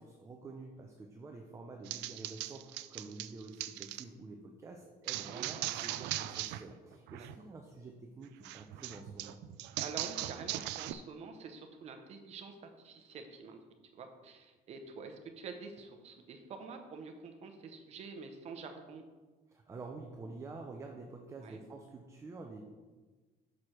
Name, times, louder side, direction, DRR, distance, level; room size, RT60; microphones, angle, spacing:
voice 1, 0.0-9.4 19.5-22.6, right 3 dB, 15° right, 2 dB, 0.5 m, -48 dB
sound 1, 1.9-4.0 5.1-6.6 6.9-7.4 8.4-10.9, right 14 dB, 90° right, 0.4 m, -39 dB
voice 2, 9.8-13.6 13.9-19.0 21.4-21.6, right 4 dB, 40° right, 5 dB, 0.8 m, -47 dB
6.2 x 4.9 x 5.8 m, 1.3 s
cardioid pair, 170°, 18 cm